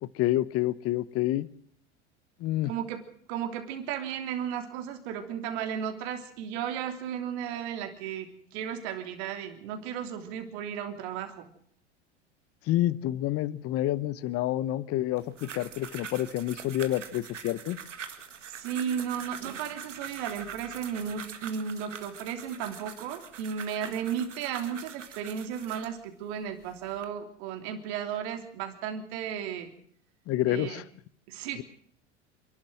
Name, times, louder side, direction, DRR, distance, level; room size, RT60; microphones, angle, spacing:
voice 1, 0.0-1.5 2.4-2.7 12.7-17.8 30.3-30.8, left 14 dB, 40° left, 18 dB, 0.9 m, -28 dB
voice 2, 2.6-11.5 18.4-29.7 30.5-30.8 31.3-31.6, right 8 dB, 60° right, 4 dB, 3.3 m, -34 dB
sound 1, 15.2-26.0 26.6-27.1, right 7 dB, 85° right, 2.0 m, -43 dB
28.0 x 12.0 x 7.8 m, 0.62 s
hypercardioid pair, 85°, 36 cm